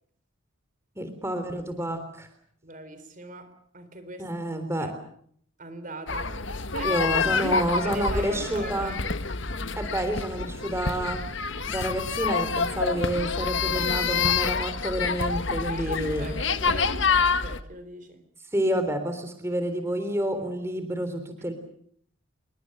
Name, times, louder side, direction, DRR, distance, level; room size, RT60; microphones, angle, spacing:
voice 1, 1.0-2.3 4.2-4.9 6.8-8.9 9.8-11.2 11.6-16.3 18.5-21.5, equal, 15° right, 3.6 m, -29 dB
voice 2, 2.6-4.3 4.8-4.9 5.6-6.4 6.7-7.0 7.3-9.0 15.7-18.2, right 2 dB, 40° right, 3.9 m, -40 dB
sound 1, 6.1-17.6, left 5 dB, 60° left, 1.5 m, -27 dB
28.0 x 24.0 x 6.7 m
head